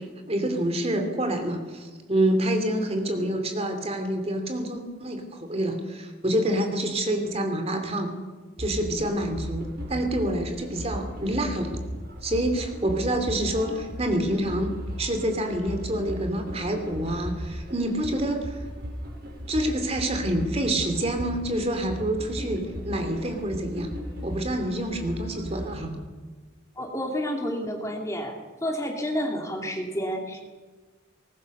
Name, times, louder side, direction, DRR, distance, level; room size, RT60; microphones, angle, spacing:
voice 1, 0.0-8.1 8.6-11.7 12.2-14.7 15.0-18.6 19.5-23.9 24.2-25.9, right 1 dB, 30° right, 6 dB, 2.8 m, -27 dB
sound 1, 8.6-25.9, equal, 50° right, 5.9 m, -37 dB
voice 2, 26.8-28.3 28.6-30.4, equal, 15° left, 2 dB, 2.8 m, -30 dB
23.0 x 20.0 x 6.8 m, 1.3 s
head